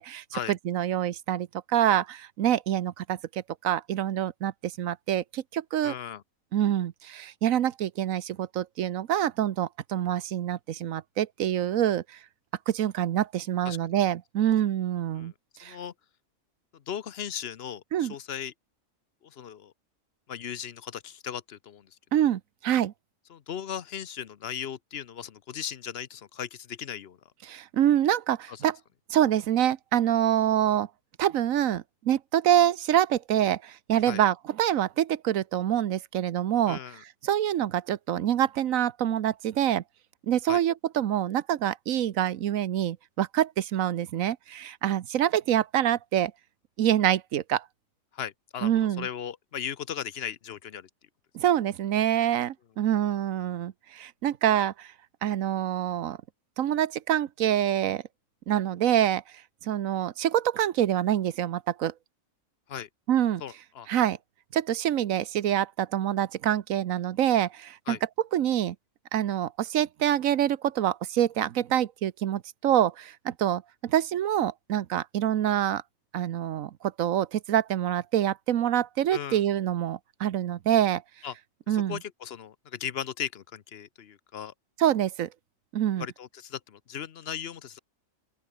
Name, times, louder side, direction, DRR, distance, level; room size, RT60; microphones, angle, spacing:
voice 1, 0.0-5.9 6.5-12.0 12.7-15.3 15.6-15.8 17.9-18.1 22.1-22.9 27.5-28.8 29.1-30.9 31.2-36.8 37.2-39.8 40.2-46.3 46.8-47.6 48.6-49.1 51.3-54.9 55.2-56.2 56.6-58.0 58.5-59.2 59.6-61.9 63.1-63.4 63.9-64.2 64.5-68.0 68.3-68.7 69.1-75.8 76.1-81.0 81.7-82.0 84.8-85.3 85.7-86.1, right 11 dB, 75° right, 1.2 m, -26 dB
voice 2, 5.8-6.2 13.6-13.8 15.2-15.3 15.6-15.9 16.7-18.5 19.2-19.7 20.3-21.9 22.1-22.3 23.3-27.2 28.5-28.6 34.1-34.2 36.7-37.0 40.5-40.6 48.1-50.9 62.7-62.9 63.4-63.9 67.9-68.0 79.1-79.4 81.2-81.3 81.7-84.5 86.0-87.8, left 8 dB, 55° left, 0.9 m, -37 dB
open air
omnidirectional pair, 1.4 m